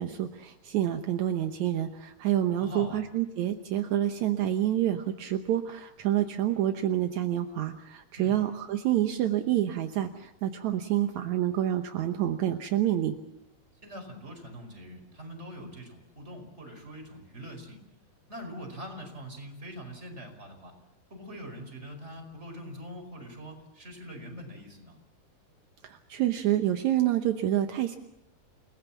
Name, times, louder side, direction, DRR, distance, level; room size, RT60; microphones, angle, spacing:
voice 1, 0.0-13.2 25.8-28.0, right 12 dB, 70° right, 6 dB, 1.8 m, -28 dB
voice 2, 2.6-3.0 8.1-8.4 13.8-17.8 18.3-20.7 21.1-25.0, equal, 15° right, 4 dB, 4.9 m, -43 dB
29.5 x 19.5 x 7.3 m, 0.85 s
omnidirectional pair, 4.7 m